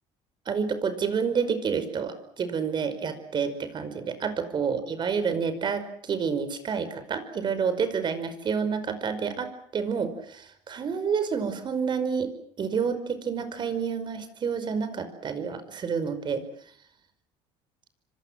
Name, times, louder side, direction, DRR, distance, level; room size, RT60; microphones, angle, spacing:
voice 1, 0.5-12.3 12.6-16.4, right 6 dB, 40° right, 11 dB, 5.3 m, -29 dB
26.0 x 25.5 x 7.6 m, 0.63 s
cardioid pair, 115°, 12 cm